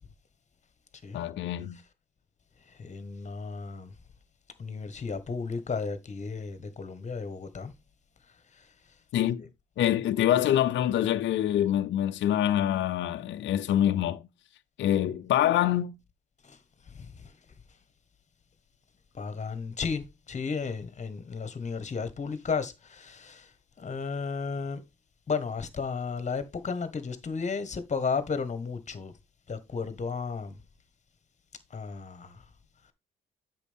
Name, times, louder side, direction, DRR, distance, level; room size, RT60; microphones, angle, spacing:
voice 1, 1.1-1.8 9.1-9.4 9.8-14.2 14.8-16.0, left 11 dB, 65° left, 0.6 m, -25 dB
voice 2, 2.6-3.9 4.6-7.7 8.3-9.0 16.4-17.4 19.1-24.8 25.3-29.1 29.5-30.6 31.7-32.4, left 5 dB, 35° left, 1.5 m, -34 dB
8.3 x 6.2 x 3.6 m
cardioid pair, 90°, 20 cm